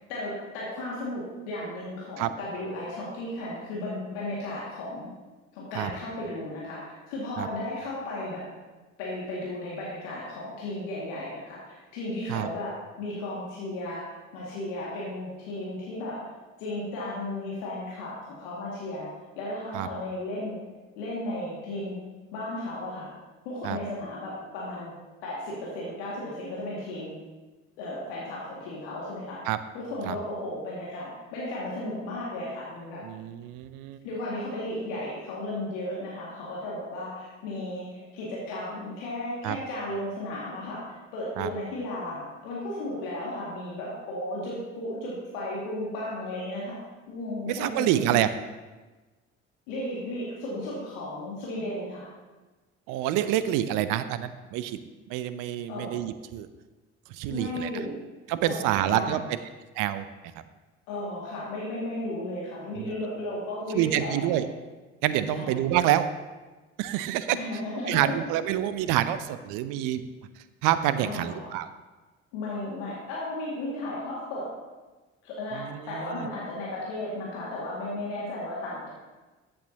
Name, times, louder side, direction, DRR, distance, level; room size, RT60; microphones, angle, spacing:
voice 1, 0.1-5.1 5.5-8.4 9.0-12.7 13.0-14.0 14.3-16.2 16.6-19.1 19.4-20.6 21.0-22.0 22.3-23.1 23.4-24.9 25.2-27.2 27.8-29.4 29.7-33.0 34.0-46.8 47.1-48.2 49.7-52.1 55.7-56.1 57.3-57.9 58.4-59.2 60.9-64.3 65.3-65.6 67.3-68.1 71.0-71.5 72.3-74.5 75.2-78.9, left 1 dB, 70° left, -6 dB, 2.2 m, -34 dB
voice 2, 33.0-34.0 39.4-39.6 41.4-41.5 47.5-48.3 52.9-54.8 55.1-56.5 57.1-57.7 58.3-59.4 59.8-60.1 62.8-62.9 63.7-64.5 65.0-66.1 66.8-67.4 67.9-70.0 70.6-71.7 75.5-76.3, right 12 dB, 60° right, 13 dB, 0.7 m, -27 dB
14.0 x 8.8 x 2.9 m, 1.2 s
figure-of-eight pair, 50°, 36 cm